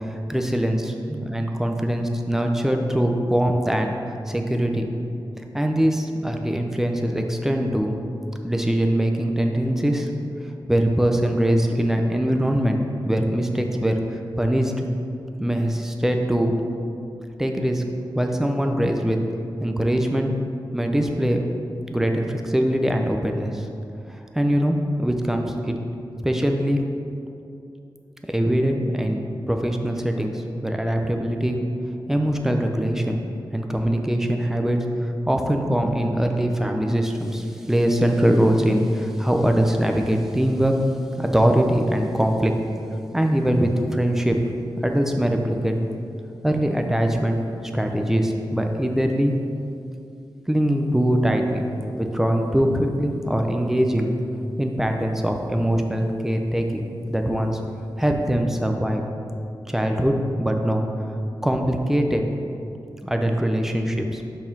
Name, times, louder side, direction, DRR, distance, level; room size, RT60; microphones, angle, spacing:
voice 1, 0.1-0.8 1.1-3.9 4.3-4.9 5.5-8.0 8.4-10.1 10.7-12.8 13.1-14.9 15.4-16.5 17.4-17.8 18.1-19.2 19.6-20.3 20.7-21.4 21.9-23.7 24.1-25.8 26.2-26.8 28.3-31.6 32.1-33.2 33.5-40.7 41.2-42.5 43.1-44.4 44.8-45.7 46.4-47.4 47.7-49.3 50.5-51.7 52.0-54.1 54.6-57.6 58.0-59.0 59.7-60.8 61.4-62.2 63.0-64.2, equal, 5° right, 3 dB, 0.6 m, -22 dB
5.4 x 4.6 x 6.0 m, 2.6 s
wide cardioid pair, 110°, 8 cm